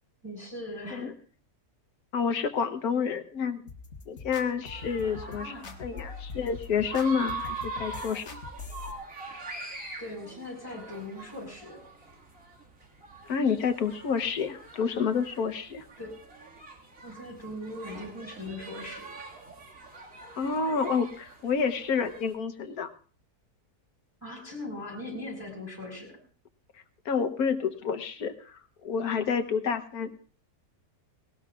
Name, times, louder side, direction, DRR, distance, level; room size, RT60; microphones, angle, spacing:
voice 1, 0.2-1.1 5.2-5.8 10.0-11.9 16.0-16.2 17.0-19.1 24.2-26.2, left 1 dB, 10° left, 0 dB, 4.8 m, -40 dB
voice 2, 2.1-3.6 4.1-5.5 5.8-8.4 13.3-15.8 20.4-22.9 27.0-28.5 28.8-30.1, left 6 dB, 75° left, 7 dB, 1.4 m, -29 dB
sound 1, 3.7-8.9, left 4 dB, 50° left, 1.5 m, -43 dB
sound 2, 4.7-22.3, right 3 dB, 55° right, 2.5 m, -43 dB
18.5 x 18.5 x 2.4 m, 0.41 s
omnidirectional pair, 1.6 m